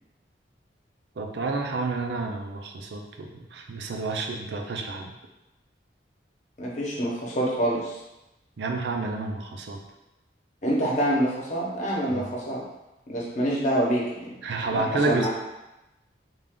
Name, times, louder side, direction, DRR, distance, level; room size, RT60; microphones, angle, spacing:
voice 1, 1.2-5.1 8.6-9.8 12.1-12.2 14.4-15.3, right 3 dB, 70° right, 2 dB, 0.5 m, -30 dB
voice 2, 6.6-8.0 10.6-12.6 13.1-14.3 14.7-15.3, right 1 dB, 40° left, -4 dB, 0.9 m, -26 dB
3.5 x 2.4 x 3.6 m, 0.97 s
head